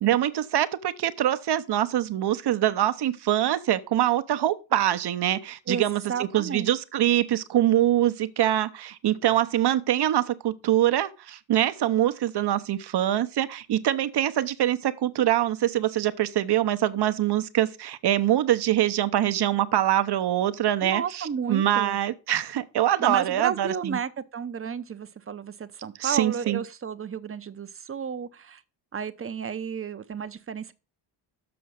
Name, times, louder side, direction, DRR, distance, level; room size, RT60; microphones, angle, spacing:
voice 1, 0.0-24.0 26.0-26.6, right 12 dB, 55° right, 0.9 m, -24 dB
voice 2, 5.7-6.7 20.8-22.0 23.0-28.6 28.9-30.7, right 7 dB, 30° right, 0.8 m, -32 dB
7.0 x 5.0 x 6.4 m
cardioid pair, 80°, 48 cm